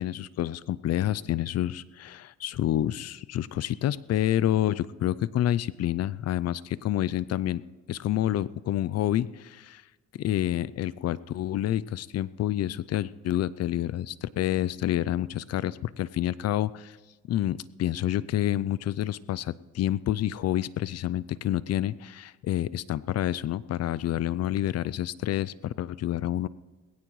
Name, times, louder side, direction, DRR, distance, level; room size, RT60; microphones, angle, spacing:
voice 1, 0.0-7.6 7.9-9.8 10.1-17.0 17.3-26.5, left 12 dB, 55° left, 18 dB, 0.4 m, -28 dB
19.5 x 17.0 x 3.1 m, 1.2 s
cardioid pair, 90°, 30 cm